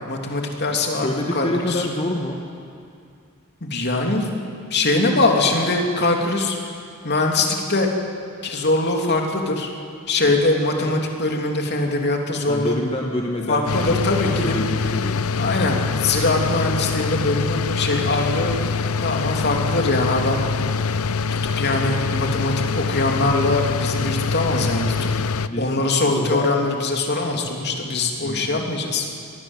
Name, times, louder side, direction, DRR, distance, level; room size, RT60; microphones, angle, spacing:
voice 1, 0.1-1.9 3.6-4.4 4.7-6.6 7.0-7.9 8.4-9.7 10.1-12.8 13.5-14.5 15.4-18.6 19.0-20.4 21.6-25.1 25.6-29.1, left 2 dB, 50° left, 2 dB, 3.0 m, -22 dB
voice 2, 0.9-2.4 5.5-5.6 10.2-10.4 10.8-10.9 11.2-11.3 11.8-13.9 14.4-15.4 25.4-26.8 28.2-28.7 29.1-29.2, left 1 dB, 25° left, 0 dB, 1.5 m, -28 dB
sound 1, 13.7-25.5, left 4 dB, 80° left, 0.7 m, -24 dB
24.5 x 19.5 x 8.1 m, 2.4 s
head